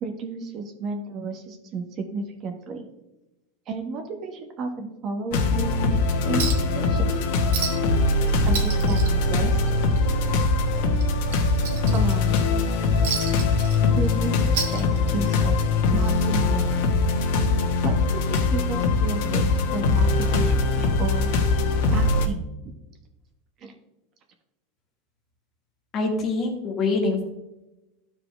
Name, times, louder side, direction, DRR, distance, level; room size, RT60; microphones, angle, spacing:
voice 1, 0.0-2.9 3.7-7.1 8.4-9.7 11.9-12.4 13.9-15.6 15.9-16.9 17.8-21.3 21.9-22.4 23.6-23.7, right 4 dB, 35° right, 5 dB, 1.1 m, -32 dB
sound 1, 5.3-22.3, left 3 dB, 65° left, 1.4 m, -22 dB
Chink clink, 6.4-6.8 7.1-7.2 7.5-8.0 8.3-10.0 10.3-10.5 11.0-12.4 13.0-14.1 14.4-15.4 16.5-16.6, right 6 dB, 75° right, 1.6 m, -32 dB
voice 2, 25.9-27.2, left 3 dB, 30° left, 2 dB, 1.7 m, -24 dB
12.5 x 4.8 x 3.3 m, 0.97 s
supercardioid pair, 145°, 0 cm